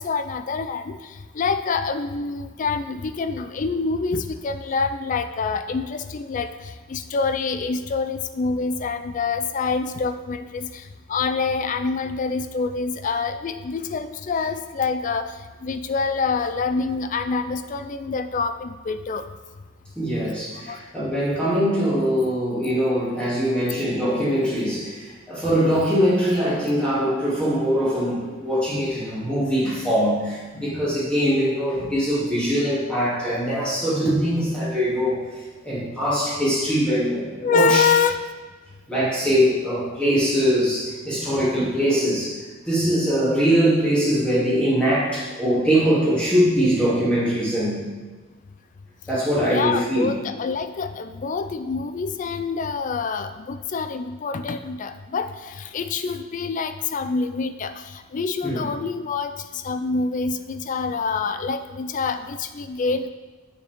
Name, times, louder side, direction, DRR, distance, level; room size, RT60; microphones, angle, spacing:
voice 1, 0.0-19.2 20.7-20.8 37.4-38.2 49.5-63.1, left 4 dB, 40° left, 10 dB, 0.4 m, -26 dB
voice 2, 19.9-37.9 38.9-47.8 49.1-50.1 58.4-58.7, equal, 5° left, -10 dB, 2.8 m, -22 dB
9.5 x 7.1 x 3.6 m, 1.3 s
head